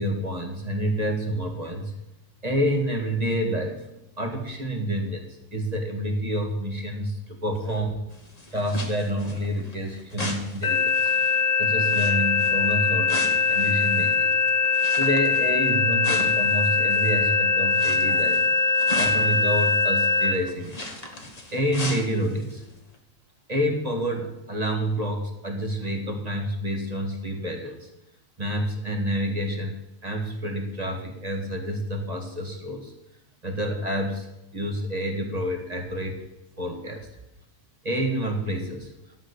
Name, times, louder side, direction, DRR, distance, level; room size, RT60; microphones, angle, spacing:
voice 1, 0.0-1.9 2.4-3.8 4.2-5.3 5.5-8.0 8.5-11.1 11.6-14.4 14.9-18.4 18.9-20.8 21.2-22.6 23.5-27.9 28.4-32.9 33.4-34.3 34.5-36.2 36.6-37.1 37.8-38.9, equal, 25° right, 2 dB, 1.8 m, -28 dB
sound 1, 8.1-17.3 17.6-22.6 22.9-23.0, left 1 dB, 25° left, 1.5 m, -37 dB
sound 2, 10.6-20.3, left 4 dB, 80° left, 2.6 m, -22 dB
13.0 x 6.3 x 8.1 m, 0.92 s
omnidirectional pair, 1.7 m